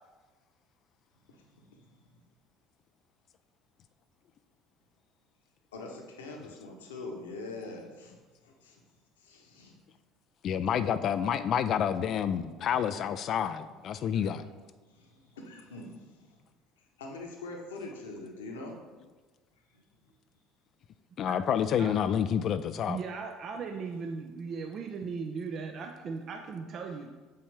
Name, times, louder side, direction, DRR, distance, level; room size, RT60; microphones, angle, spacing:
voice 1, 1.3-2.2 5.7-8.2 8.4-8.8 9.2-9.7 10.8-11.0 13.9-14.3 14.9-16.4 17.0-18.8 19.7-19.8, left 2 dB, 80° left, 1 dB, 1.1 m, -44 dB
voice 2, 10.4-14.4 21.2-23.0, left 8 dB, 50° left, 12 dB, 0.3 m, -29 dB
voice 3, 22.9-27.1, right 5 dB, 45° right, 3 dB, 0.6 m, -37 dB
6.8 x 5.5 x 3.3 m, 1.3 s
hypercardioid pair, 65°, 0 cm